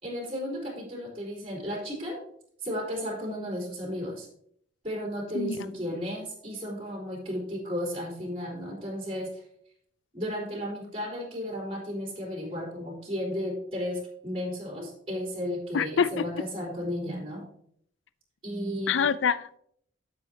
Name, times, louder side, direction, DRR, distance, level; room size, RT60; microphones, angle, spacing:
voice 1, 0.0-2.2 2.6-4.3 4.8-9.4 10.1-17.5 18.4-19.1, equal, 30° right, -3 dB, 3.6 m, -34 dB
voice 2, 15.7-16.2 18.9-19.6, left 6 dB, 75° left, 15 dB, 0.4 m, -25 dB
12.5 x 7.3 x 2.8 m, 0.66 s
head